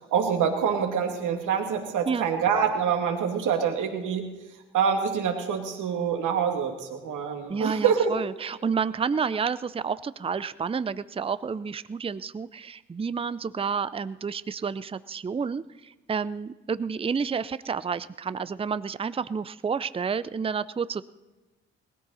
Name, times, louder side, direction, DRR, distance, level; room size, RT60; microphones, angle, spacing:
voice 1, 0.1-4.3 4.7-8.1, right 7 dB, 65° right, 4 dB, 2.4 m, -26 dB
voice 2, 7.5-21.0, right 6 dB, 15° right, 16 dB, 0.6 m, -30 dB
20.0 x 14.0 x 4.2 m, 1.1 s
hypercardioid pair, 45°, 33 cm